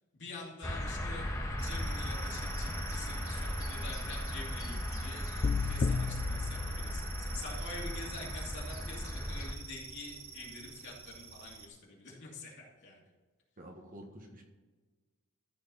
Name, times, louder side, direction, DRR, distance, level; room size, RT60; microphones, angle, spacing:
voice 1, 0.1-13.1, left 3 dB, 55° left, -3 dB, 2.8 m, -47 dB
sound 1, 0.6-9.5, equal, 15° left, 1.3 m, -37 dB
sound 2, 1.6-11.7, right 8 dB, 70° right, 0.9 m, -48 dB
sound 3, 5.4-7.6, left 5 dB, 35° left, 0.3 m, -34 dB
voice 2, 13.6-14.4, right 1 dB, 40° right, 2 dB, 1.5 m, -49 dB
14.0 x 4.7 x 5.6 m, 1.3 s
head